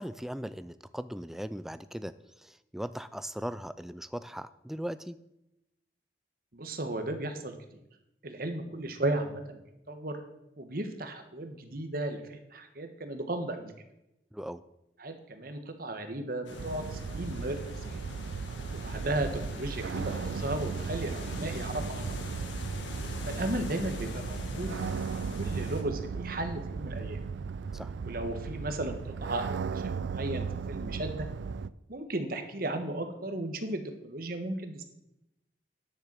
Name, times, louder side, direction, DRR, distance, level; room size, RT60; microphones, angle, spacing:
voice 1, 0.0-5.2 14.3-14.6 27.7-27.9, equal, ahead, 14 dB, 0.3 m, -39 dB
voice 2, 6.5-7.5 8.2-10.2 10.6-13.7 15.0-17.6 17.9-18.0 18.7-22.1 23.2-27.2 28.0-31.3 31.9-34.8, right 1 dB, 55° right, 7 dB, 1.3 m, -35 dB
sound 1, 16.5-25.8, left 2 dB, 85° left, 1.6 m, -43 dB
sound 2, 16.6-31.7, right 5 dB, 80° right, 0.4 m, -36 dB
10.0 x 6.8 x 7.6 m, 0.89 s
head